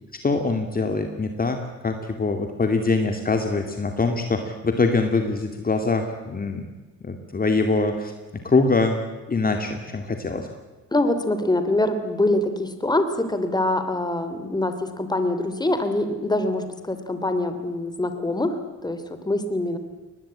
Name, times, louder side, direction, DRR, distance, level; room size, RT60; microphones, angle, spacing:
voice 1, 0.2-6.7 7.0-8.1 8.4-9.0 9.3-10.5, left 3 dB, 30° left, 5 dB, 2.4 m, -23 dB
voice 2, 10.9-19.8, left 1 dB, 15° left, 9 dB, 3.0 m, -24 dB
22.5 x 19.5 x 8.8 m, 1.2 s
cardioid pair, 90°, 30 cm